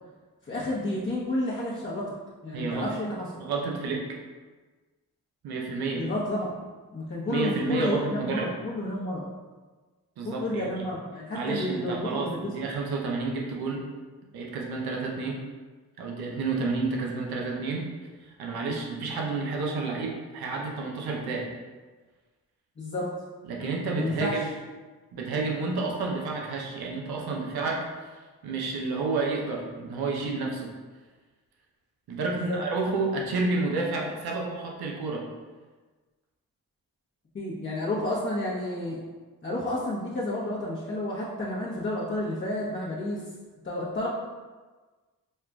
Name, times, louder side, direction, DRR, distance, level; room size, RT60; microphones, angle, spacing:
voice 1, 0.4-2.1 2.4-3.2 5.9-6.6 6.9-9.3 10.2-12.5 18.6-18.7 22.8-23.1 23.8-24.3 32.4-32.6 37.3-39.0 39.4-43.2 43.6-44.1, left 1 dB, 30° left, -8 dB, 0.8 m, -31 dB
voice 2, 2.5-2.9 3.4-4.1 5.4-6.1 7.3-8.5 10.2-10.9 11.3-13.8 14.3-15.4 16.0-17.9 18.2-21.5 23.4-24.5 25.1-28.1 28.4-30.7 32.1-35.3, right 3 dB, 85° right, -1 dB, 0.7 m, -30 dB
6.4 x 2.4 x 2.3 m, 1.3 s
cardioid pair, 60°, 37 cm